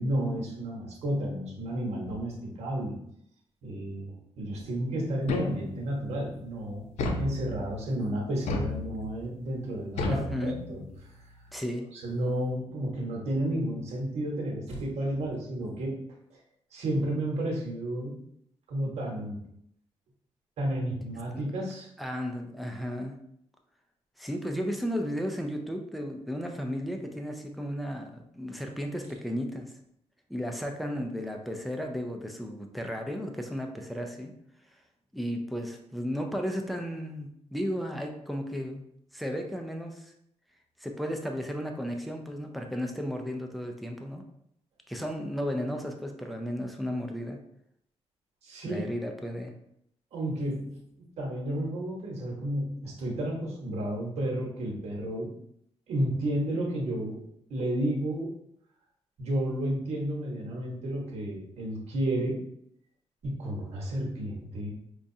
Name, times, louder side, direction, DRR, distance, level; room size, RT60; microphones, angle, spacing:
voice 1, 0.0-3.0 3.6-6.9 7.2-10.8 11.9-16.0 16.7-18.2 18.7-19.4 20.6-21.9 48.4-48.9 50.1-50.7 51.2-55.3 55.9-57.2 57.5-58.3 59.2-62.4 63.2-64.7, right 1 dB, 70° right, -2 dB, 1.1 m, -31 dB
sound 1, 5.3-6.0 7.0-7.8 8.5-9.3 10.0-11.0, left 3 dB, 90° left, 0.6 m, -32 dB
voice 2, 10.1-10.6 11.5-11.9 21.3-21.4 22.0-23.2 24.2-29.7 30.3-34.3 35.1-38.8 39.1-40.1 40.8-44.2 44.9-47.4 48.6-49.5, equal, ahead, 3 dB, 0.4 m, -34 dB
5.0 x 2.3 x 2.7 m, 0.72 s
wide cardioid pair, 170°, 11 cm